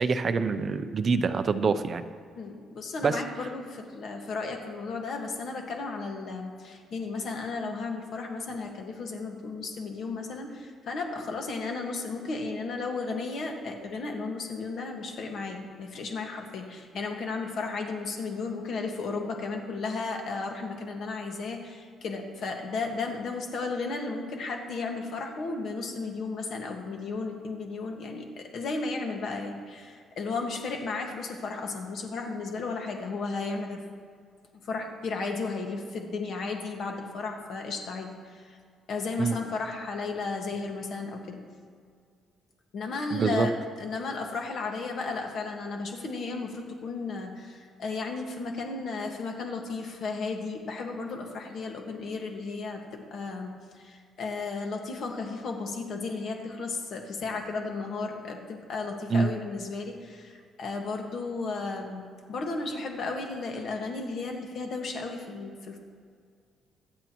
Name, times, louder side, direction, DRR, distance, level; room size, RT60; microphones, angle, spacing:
voice 1, 0.0-2.0 3.0-3.2 39.2-39.4 43.1-43.5 59.1-59.3, right 4 dB, 35° right, 10 dB, 0.5 m, -25 dB
voice 2, 2.4-33.8 34.6-38.6 38.9-41.4 42.7-65.8, left 3 dB, 55° left, 2 dB, 1.6 m, -34 dB
24.5 x 8.2 x 3.0 m, 2.1 s
cardioid pair, 150°, 0 cm